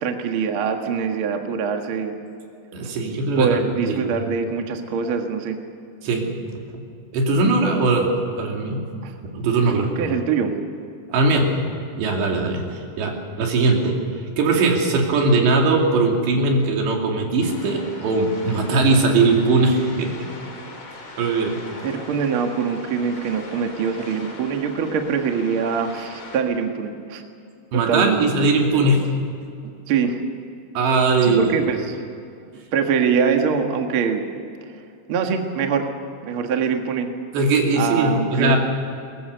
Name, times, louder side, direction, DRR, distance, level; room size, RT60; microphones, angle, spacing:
voice 1, 0.0-2.1 3.4-5.6 9.0-9.1 10.0-10.5 21.8-27.2 27.7-28.2 29.9-30.2 31.2-32.0 32.7-34.2 35.1-35.9 36.2-37.1 37.7-38.6, right 6 dB, 55° right, 4 dB, 1.5 m, -23 dB
voice 2, 2.7-4.1 6.0-6.3 6.7-6.8 7.1-8.9 9.2-9.9 11.1-14.0 14.4-20.3 21.2-21.6 27.7-29.1 30.7-31.5 37.3-38.6, right 3 dB, 85° right, 1 dB, 4.8 m, -20 dB
sound 1, 17.4-26.4, left 2 dB, 30° left, 3.3 m, -40 dB
21.5 x 21.0 x 6.8 m, 2.5 s
omnidirectional pair, 4.9 m